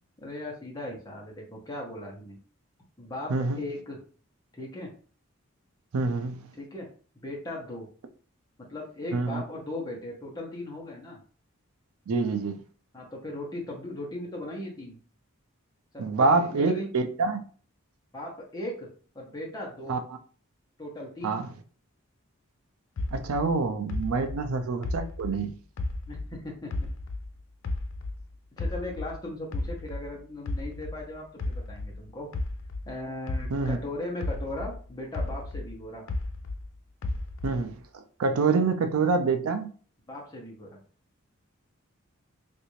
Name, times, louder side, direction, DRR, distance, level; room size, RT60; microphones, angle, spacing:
voice 1, 0.2-2.4 3.0-4.0 4.5-4.9 6.6-6.9 7.1-7.9 8.6-11.2 12.9-15.0 15.9-16.9 18.1-18.9 19.1-20.0 20.8-21.4 24.1-24.3 26.1-26.9 28.6-32.3 32.9-36.0 40.1-40.8, left 1 dB, 15° left, 0.9 m, -38 dB
voice 2, 3.3-3.6 5.9-6.5 9.1-9.4 12.1-12.6 16.0-17.4 19.9-20.0 21.2-21.5 23.1-25.6 33.5-33.8 37.4-39.7, right 4 dB, 75° right, 0.4 m, -26 dB
sound 1, 23.0-26.4 26.7-29.2 29.5-33.9 34.2-36.7 37.0-37.7, left 2 dB, 60° left, 0.4 m, -33 dB
3.2 x 2.6 x 3.1 m
head